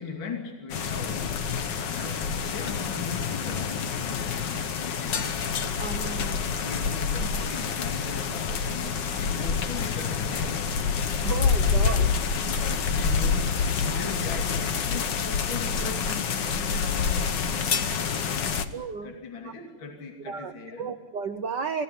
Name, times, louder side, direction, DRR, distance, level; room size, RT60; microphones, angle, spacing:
voice 1, 0.0-1.3 1.7-5.4 6.0-6.2 6.6-11.0 11.6-17.6 18.1-18.7 19.0-20.9, left 5 dB, 40° left, 2 dB, 3.2 m, -39 dB
sound 1, 0.7-18.6, left 6 dB, 55° left, 1.2 m, -27 dB
voice 2, 5.8-6.4 11.2-12.1 18.7-19.1 19.4-19.5 20.3-21.8, right 5 dB, 80° right, 8 dB, 0.9 m, -33 dB
26.5 x 17.5 x 9.5 m, 1.2 s
omnidirectional pair, 3.5 m